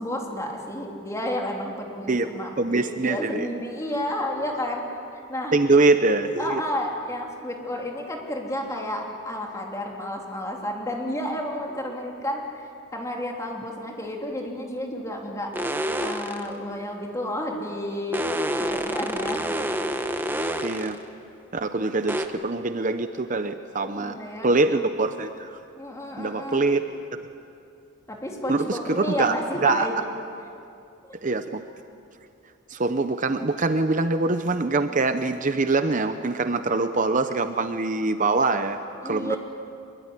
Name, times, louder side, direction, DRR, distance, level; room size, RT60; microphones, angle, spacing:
voice 1, 0.0-4.8 5.1-5.5 6.4-15.7 16.0-18.3 18.6-19.4 23.8-24.5 25.8-26.6 28.1-29.9 39.0-39.4, left 1 dB, 15° left, 0 dB, 3.3 m, -31 dB
voice 2, 2.6-3.5 5.5-6.6 20.6-21.0 21.5-24.2 24.4-25.6 26.2-26.8 28.5-29.4 29.6-29.9 31.2-31.6 32.7-38.8 39.0-39.3, right 3 dB, 40° right, 9 dB, 0.8 m, -23 dB
sound 1, 15.5-16.5 18.1-21.0 22.1-22.3, right 1 dB, 10° right, 1.2 m, -28 dB
24.5 x 22.5 x 9.9 m, 2.6 s
head